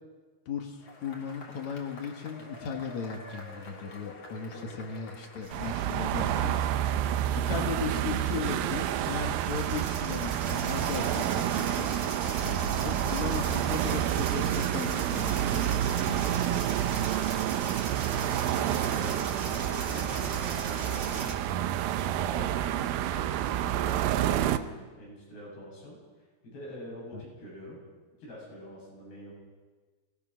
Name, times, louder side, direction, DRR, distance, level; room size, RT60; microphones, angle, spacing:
voice 1, 0.5-6.6 6.9-7.2 7.5-16.8 27.1-27.2, left 6 dB, 55° left, 4 dB, 2.4 m, -37 dB
Cheering / Applause / Crowd, 0.8-9.5, left 2 dB, 35° left, 2.5 m, -49 dB
voice 2, 4.5-4.8 17.0-17.8 18.3-21.4 22.1-26.0 26.4-27.8 28.2-29.3, equal, 85° left, -4 dB, 10.5 m, -45 dB
sound 1, 5.4-21.3, right 4 dB, 45° right, 3.2 m, -39 dB
sound 2, 5.5-24.6, right 12 dB, 75° right, 2.3 m, -29 dB
23.5 x 18.5 x 6.3 m, 1.3 s
omnidirectional pair, 4.6 m